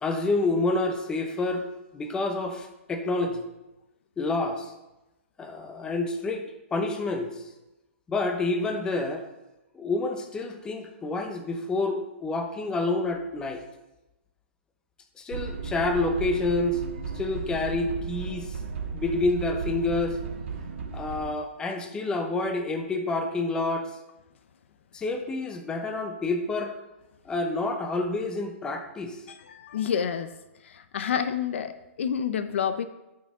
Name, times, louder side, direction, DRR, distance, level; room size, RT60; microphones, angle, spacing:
voice 1, 0.0-1.6 1.9-3.5 4.2-4.7 5.4-6.5 6.7-7.4 8.1-9.2 9.7-13.6 15.2-16.8 17.1-18.5 18.9-20.2 20.9-23.9 24.9-26.8 27.2-29.2, left 2 dB, 10° left, 6 dB, 0.8 m, -28 dB
sound 1, 15.3-21.3, right 5 dB, 75° right, 1.7 m, -35 dB
voice 2, 29.3-30.3 30.6-32.8, left 8 dB, 65° left, 11 dB, 0.6 m, -29 dB
12.5 x 5.9 x 3.7 m, 0.97 s
hypercardioid pair, 155°, 7 cm